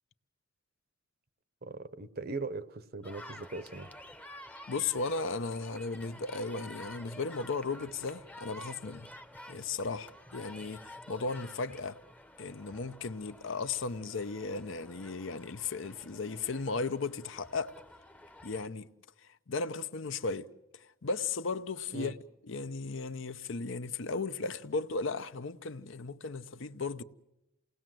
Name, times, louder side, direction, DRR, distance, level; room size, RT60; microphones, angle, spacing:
voice 1, 1.6-3.9 21.9-22.1, right 3 dB, 45° right, 0.9 m, -39 dB
sound 1, 3.0-18.7, left 1 dB, 5° left, 0.8 m, -51 dB
voice 2, 4.7-9.1 9.5-12.0 12.4-17.8 18.4-18.9 19.5-22.1 22.4-27.0, left 4 dB, 65° left, 0.8 m, -36 dB
28.5 x 19.0 x 7.7 m
head